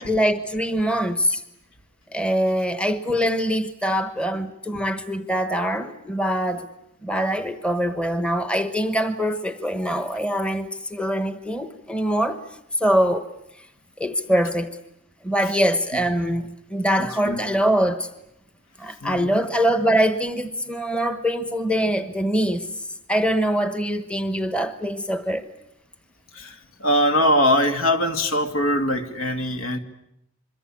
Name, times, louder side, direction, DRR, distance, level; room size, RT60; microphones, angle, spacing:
voice 1, 0.0-1.4 2.1-6.7 7.0-12.4 12.8-13.3 14.0-14.8 15.2-18.1 18.8-25.5, equal, 5° left, 1.1 m, -23 dB
voice 2, 17.0-17.4 19.0-19.4 26.3-29.8, left 1 dB, 70° left, 2.3 m, -22 dB
26.0 x 23.0 x 8.6 m
head